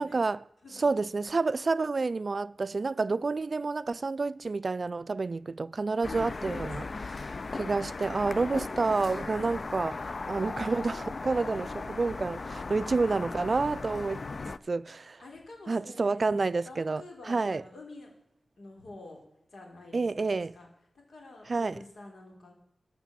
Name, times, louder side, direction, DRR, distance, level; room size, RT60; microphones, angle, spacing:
voice 1, 0.0-0.4 0.8-6.8 7.5-15.2 15.7-17.0 17.3-17.6 19.9-20.6 21.5-21.8, right 3 dB, 50° right, 0.3 m, -29 dB
voice 2, 0.6-1.0 6.5-7.1 12.6-12.9 15.2-18.1 18.6-19.2 19.5-20.7 20.9-22.5, left 2 dB, 85° left, 3.5 m, -48 dB
sound 1, 6.0-14.6, left 3 dB, 50° left, 0.4 m, -37 dB
13.0 x 6.0 x 7.3 m
wide cardioid pair, 115°, 0 cm